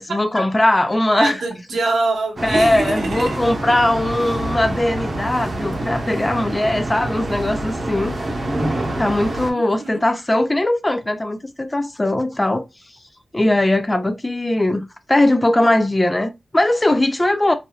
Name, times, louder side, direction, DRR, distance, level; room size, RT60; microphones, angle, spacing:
voice 1, 0.0-1.4 2.4-8.1 9.0-12.6 13.3-14.8 15.1-17.5, left 1 dB, 15° left, 0.4 m, -19 dB
voice 2, 1.1-3.4 9.5-10.0, right 3 dB, 85° right, 0.9 m, -24 dB
sound 1, 2.4-9.5, right 1 dB, 35° right, 0.9 m, -26 dB
3.2 x 2.6 x 2.3 m
wide cardioid pair, 115°, 0 cm